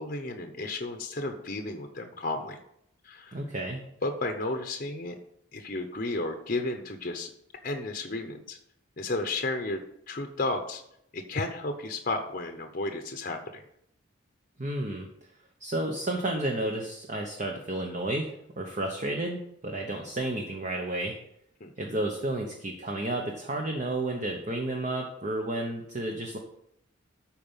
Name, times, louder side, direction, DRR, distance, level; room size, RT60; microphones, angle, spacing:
voice 1, 0.0-2.6 3.0-3.4 4.0-5.1 5.5-7.3 7.6-8.6 9.0-9.8 10.1-10.8 11.1-13.6 21.6-21.7, left 2 dB, 40° left, 5 dB, 0.8 m, -33 dB
voice 2, 3.3-3.8 14.6-15.1 15.6-21.1 21.8-26.4, right 1 dB, 35° right, 2 dB, 1.0 m, -31 dB
12.0 x 4.5 x 5.6 m, 0.75 s
head